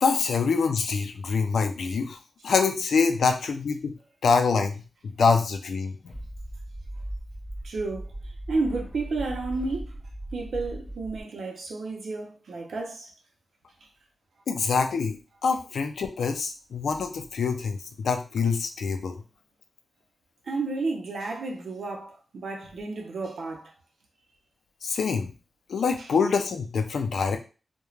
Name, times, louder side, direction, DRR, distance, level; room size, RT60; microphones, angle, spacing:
voice 1, 0.0-2.2 2.4-3.9 4.2-4.8 5.2-5.9 14.5-19.2 24.8-25.3 25.7-27.4, left 5 dB, 90° left, 0.4 m, -25 dB
sound 1, 6.1-11.2, right 1 dB, 20° right, 1.2 m, -38 dB
voice 2, 7.6-10.0 10.3-13.1 20.4-23.7 26.0-26.1, right 3 dB, 70° right, 0.6 m, -32 dB
2.4 x 2.2 x 3.1 m
wide cardioid pair, 140°, 0 cm